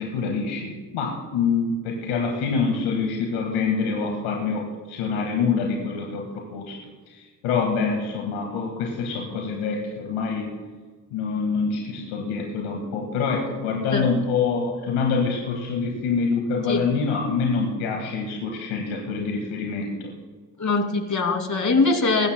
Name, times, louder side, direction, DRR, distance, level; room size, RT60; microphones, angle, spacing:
voice 1, 0.0-6.8 7.1-10.5 11.1-20.1, left 5 dB, 75° left, 1 dB, 1.8 m, -26 dB
voice 2, 20.6-22.3, left 3 dB, 35° left, 5 dB, 2.5 m, -22 dB
20.5 x 15.5 x 2.2 m, 1.4 s
hypercardioid pair, 40°, 48 cm